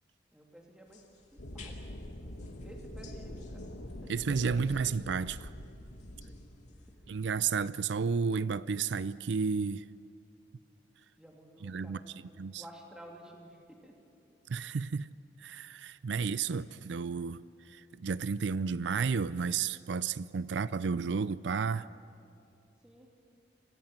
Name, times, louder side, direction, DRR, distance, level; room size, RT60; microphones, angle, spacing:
voice 1, 0.3-1.0 1.3-3.7 4.0-4.1 6.2-6.5 6.8-7.0 11.2-14.0 16.1-16.2 22.8-23.1, right 1 dB, 5° right, 2.9 m, -53 dB
sound 1, 0.8-7.0, left 5 dB, 40° left, 2.3 m, -59 dB
sound 2, 1.4-7.7, left 1 dB, 90° left, 1.7 m, -45 dB
voice 2, 4.1-5.5 7.1-9.8 11.6-12.0 12.4-12.6 14.5-15.1 15.4-21.9, right 5 dB, 75° right, 0.4 m, -32 dB
25.0 x 15.5 x 9.0 m
head